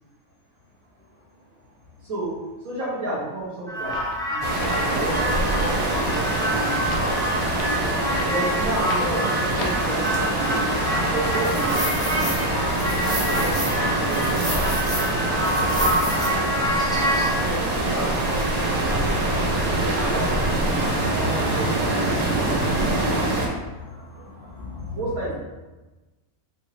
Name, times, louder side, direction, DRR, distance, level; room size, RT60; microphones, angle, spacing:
voice 1, 1.0-2.1 23.3-25.2, left 3 dB, 45° left, -9 dB, 1.9 m, -41 dB
voice 2, 2.0-4.0 4.3-6.9 8.3-10.7 11.1-12.3 13.0-14.4 17.4-19.1 19.9-22.6 24.9-25.3, right 1 dB, 70° right, -6 dB, 1.3 m, -32 dB
sound 1, 3.7-17.3, equal, 5° left, 0.5 m, -27 dB
sound 2, 3.8-10.1, left 2 dB, 65° left, 0.7 m, -37 dB
sound 3, 4.4-23.5, right 1 dB, 45° right, 0.5 m, -24 dB
4.6 x 2.6 x 3.1 m, 1.1 s
omnidirectional pair, 1.6 m